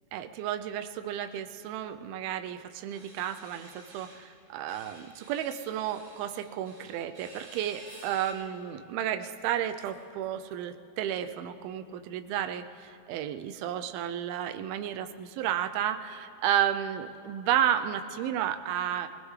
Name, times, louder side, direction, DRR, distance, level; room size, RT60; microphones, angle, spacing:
voice 1, 0.1-19.1, right 10 dB, 80° right, 7 dB, 2.2 m, -32 dB
sound 1, 2.9-4.2 4.7-8.3, right 2 dB, 30° right, 3.6 m, -51 dB
sound 2, 7.9-8.2 8.6-8.7 9.3-10.9 11.8-11.9 12.2-12.3, left 1 dB, 40° left, 5.0 m, -61 dB
21.5 x 20.5 x 3.2 m, 2.4 s
omnidirectional pair, 4.9 m